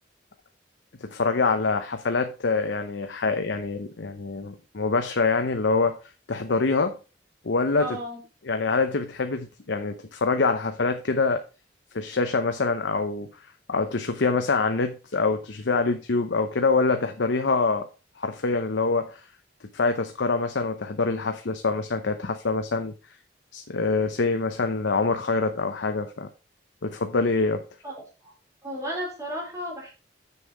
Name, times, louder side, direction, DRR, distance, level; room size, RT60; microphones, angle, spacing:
voice 1, 1.0-6.0 6.3-7.0 7.4-8.0 8.4-11.4 11.9-13.3 13.7-17.9 18.2-19.2 19.7-22.9 23.5-26.3 26.8-27.6, left 3 dB, 80° left, 7 dB, 0.8 m, -25 dB
voice 2, 7.8-8.2 27.8-27.9 28.2-28.3 28.6-29.9, equal, 20° right, -2 dB, 4.1 m, -33 dB
7.2 x 6.8 x 4.7 m, 0.32 s
head